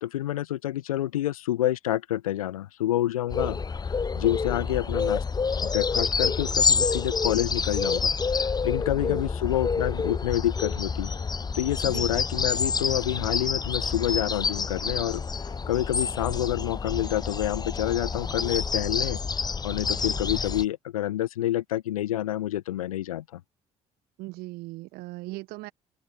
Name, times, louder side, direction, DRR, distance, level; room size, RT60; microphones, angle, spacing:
voice 1, 0.0-3.6 3.8-5.2 5.6-11.1 11.5-15.2 15.7-19.2 19.6-23.4, left 13 dB, 75° left, 1.4 m, -28 dB
sound 1, 3.3-20.6, left 5 dB, 20° left, 0.9 m, -28 dB
voice 2, 11.8-12.2 20.0-20.2 24.2-25.7, right 21 dB, 60° right, 1.2 m, -39 dB
open air
figure-of-eight pair, 50°, 18 cm